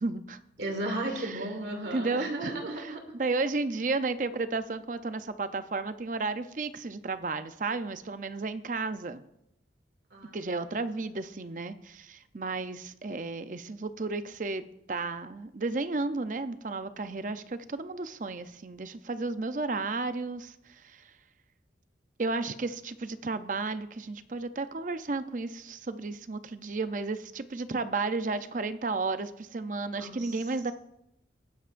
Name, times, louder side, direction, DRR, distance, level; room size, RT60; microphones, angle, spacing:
voice 1, 0.0-0.4 1.1-1.5 1.9-2.5 2.8-2.9 3.2-9.2 10.3-21.1 22.2-30.7, right 3 dB, 45° right, 11 dB, 0.6 m, -33 dB
voice 2, 0.6-3.0 10.1-10.4 30.0-30.4, right 1 dB, 75° right, 3 dB, 2.5 m, -34 dB
19.5 x 10.0 x 2.6 m, 0.82 s
head